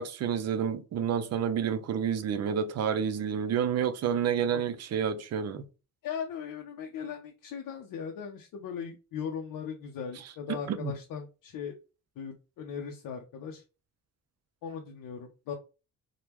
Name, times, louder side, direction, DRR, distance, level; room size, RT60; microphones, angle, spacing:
voice 1, 0.0-5.6 10.5-10.9, right 8 dB, 50° right, 0.4 m, -29 dB
voice 2, 6.0-11.7 12.2-13.6 14.6-15.5, left 7 dB, 90° left, 0.5 m, -38 dB
3.4 x 2.1 x 2.9 m
wide cardioid pair, 170°, 33 cm